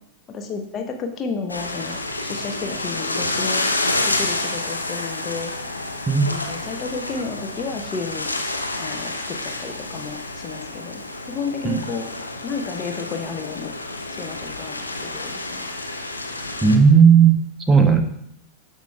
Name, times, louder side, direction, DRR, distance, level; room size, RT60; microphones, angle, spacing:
voice 1, 0.3-3.7 4.0-5.5 6.2-8.3 8.8-11.0 11.3-12.1 12.4-13.7 14.1-15.7 17.8-18.0, left 4 dB, 30° left, 4 dB, 0.7 m, -32 dB
sound 1, 1.5-16.8, left 2 dB, 85° left, 0.5 m, -29 dB
voice 2, 16.6-18.0, right 6 dB, 15° right, 6 dB, 0.7 m, -14 dB
12.0 x 4.5 x 2.2 m, 0.76 s
figure-of-eight pair, 90°, 0 cm